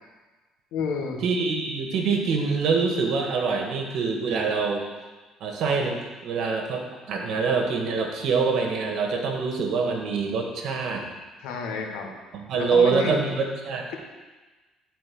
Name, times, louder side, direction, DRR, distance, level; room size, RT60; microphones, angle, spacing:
voice 1, 0.7-1.2 11.4-12.1 12.6-13.3, left 4 dB, 80° left, 2 dB, 1.5 m, -30 dB
voice 2, 1.2-4.8 5.4-6.8 7.1-11.1 12.3-13.9, right 4 dB, 65° right, 2 dB, 1.7 m, -25 dB
11.5 x 4.5 x 6.2 m, 1.3 s
cardioid pair, 95°, 0 cm